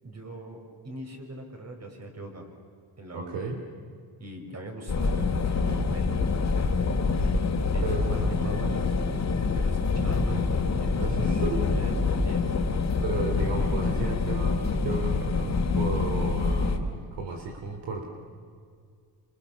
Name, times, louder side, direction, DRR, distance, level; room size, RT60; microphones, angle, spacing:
voice 1, 0.0-2.5 3.0-3.4 4.2-6.2 7.7-8.9 9.5-11.4 11.7-12.5, right 1 dB, 40° right, 2 dB, 6.7 m, -41 dB
voice 2, 3.1-3.6 7.8-8.3 11.0-11.7 13.0-18.0, right 4 dB, 75° right, 3 dB, 3.7 m, -33 dB
sound 1, 4.9-16.8, left 4 dB, 40° left, 3.5 m, -26 dB
29.0 x 27.0 x 7.2 m, 2.1 s
cardioid pair, 90°, 41 cm